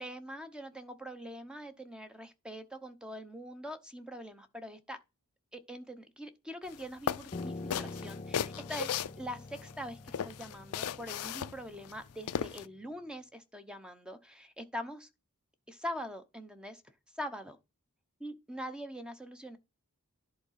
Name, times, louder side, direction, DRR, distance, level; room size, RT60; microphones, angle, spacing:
voice 1, 0.0-5.0 5.5-15.1 15.7-16.8 17.2-17.6 18.2-19.6, equal, 5° right, 0.8 m, -43 dB
sound 1, 6.7-6.8 7.1-9.7 10.1-12.7, left 8 dB, 80° left, 0.4 m, -36 dB
Piano, 7.3-12.6, left 3 dB, 30° left, 0.5 m, -45 dB
11.0 x 3.8 x 5.7 m
head